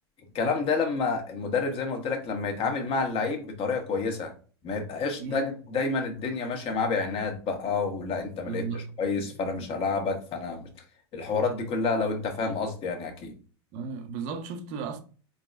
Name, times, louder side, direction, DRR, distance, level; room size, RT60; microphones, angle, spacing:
voice 1, 0.3-4.3 4.6-10.7 11.1-13.3, left 4 dB, 40° left, 1.4 m, -29 dB
voice 2, 8.4-9.3 13.7-15.0, right 5 dB, 55° right, 0.9 m, -35 dB
4.0 x 4.0 x 2.5 m
hypercardioid pair, 95°, 14 cm